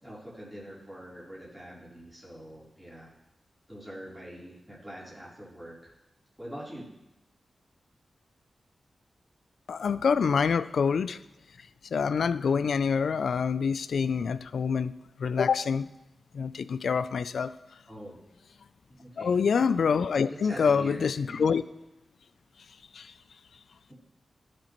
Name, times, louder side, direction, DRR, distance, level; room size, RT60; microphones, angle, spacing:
voice 1, 0.0-3.1 3.7-5.9 6.4-6.9 17.9-18.2 19.0-19.4 20.4-21.4 23.9-24.0, equal, 10° right, -8 dB, 3.6 m, -43 dB
voice 2, 9.7-11.2 11.9-14.9 15.2-15.9 16.3-17.5 19.2-21.6 22.9-23.1, left 6 dB, 80° left, 16 dB, 0.3 m, -26 dB
16.0 x 6.6 x 3.0 m, 0.93 s
wide cardioid pair, 125°, 0 cm